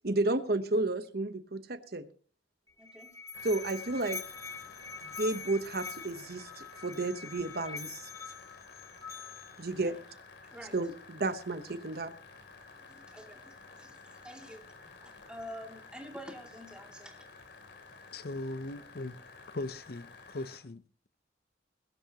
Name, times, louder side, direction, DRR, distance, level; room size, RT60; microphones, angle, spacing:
voice 1, 0.0-2.1 3.4-4.2 5.2-8.1 9.6-9.9 10.7-12.1, right 2 dB, 60° right, 1.0 m, -32 dB
Musical instrument, 2.7-9.7, left 5 dB, 20° left, 1.0 m, -44 dB
voice 2, 2.8-3.1 9.8-10.0 10.4-10.8 12.8-14.7 15.0-17.2, equal, 5° right, 2.6 m, -48 dB
sound 1, 3.3-20.6, left 4 dB, 75° left, 3.2 m, -52 dB
voice 3, 18.1-19.2 19.5-20.8, left 2 dB, 55° left, 0.7 m, -39 dB
21.0 x 11.5 x 2.9 m
head